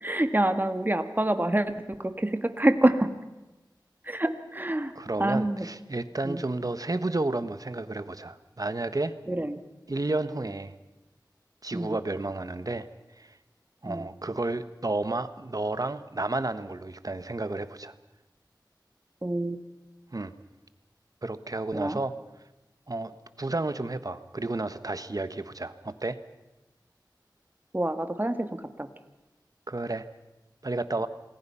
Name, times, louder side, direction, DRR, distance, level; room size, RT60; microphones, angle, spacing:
voice 1, 0.0-3.1 4.1-4.9 5.2-5.7 6.3-6.4 9.3-9.6 11.7-12.0 13.8-14.1 19.2-19.6 21.7-22.0 27.7-28.5 28.8-28.9, right 1 dB, 25° right, 8 dB, 1.7 m, -26 dB
voice 2, 4.9-9.1 9.9-10.7 11.6-12.9 13.2-13.4 13.8-17.9 20.1-20.3 21.2-22.2 22.9-26.2 29.7-30.1 30.6-31.1, right 2 dB, 50° right, 12 dB, 1.3 m, -31 dB
27.5 x 20.0 x 5.7 m, 1.0 s
wide cardioid pair, 60°, 8 cm